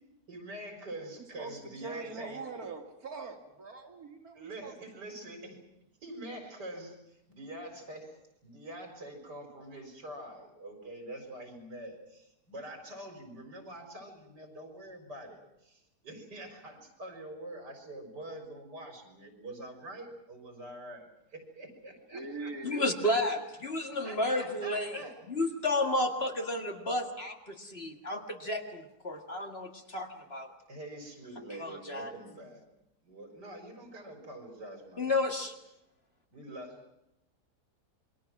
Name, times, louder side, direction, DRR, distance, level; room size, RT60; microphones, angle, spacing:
voice 1, 0.3-2.4 4.3-5.6 6.0-8.2 8.4-21.1 21.3-22.5 24.0-25.1 30.7-32.6 33.0-35.2 36.3-36.8, right 1 dB, 85° right, 4 dB, 4.9 m, -45 dB
voice 2, 1.2-4.7 22.1-22.9, right 3 dB, 60° right, 4 dB, 2.8 m, -42 dB
voice 3, 22.6-25.0 25.3-30.5 31.6-32.1 35.0-35.5, left 1 dB, 40° left, 4 dB, 2.1 m, -32 dB
28.0 x 22.5 x 6.0 m, 0.86 s
omnidirectional pair, 1.8 m